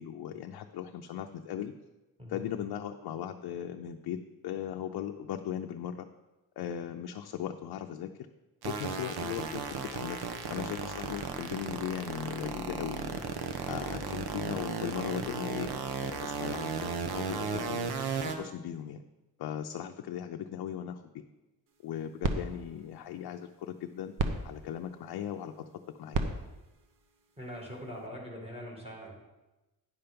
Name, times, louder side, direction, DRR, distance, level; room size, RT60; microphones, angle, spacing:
voice 1, 0.0-1.7 2.3-4.2 4.4-6.1 6.6-8.1 8.7-13.2 13.7-15.8 16.2-17.9 18.2-19.0 19.4-21.2 21.8-24.1 24.4-26.2, left 10 dB, 80° left, 4 dB, 0.6 m, -38 dB
sound 1, 8.6-18.4, right 5 dB, 80° right, 1.0 m, -35 dB
sound 2, 21.7-28.1, right 3 dB, 60° right, 0.9 m, -38 dB
voice 2, 27.4-29.1, equal, 15° right, -2 dB, 2.1 m, -42 dB
9.8 x 5.7 x 5.2 m, 1.1 s
wide cardioid pair, 150°, 37 cm